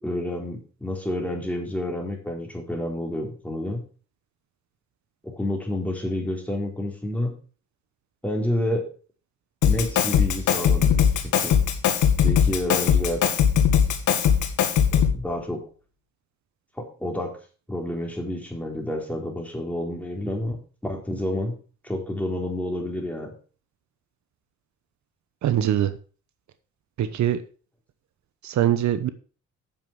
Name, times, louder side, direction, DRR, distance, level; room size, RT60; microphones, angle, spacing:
voice 1, 0.0-3.8 5.2-7.4 8.2-8.9 9.6-11.6 12.2-13.2 14.9-15.6 16.8-17.4 17.7-21.6 21.8-23.3, left 1 dB, 5° left, 0 dB, 4.0 m, -29 dB
Drum kit, 9.6-15.2, left 8 dB, 75° left, 2.1 m, -20 dB
voice 2, 25.4-25.9 27.0-27.4 28.4-29.1, right 11 dB, 70° right, 12 dB, 1.0 m, -22 dB
9.1 x 7.2 x 6.3 m, 0.39 s
cardioid pair, 90°, 30 cm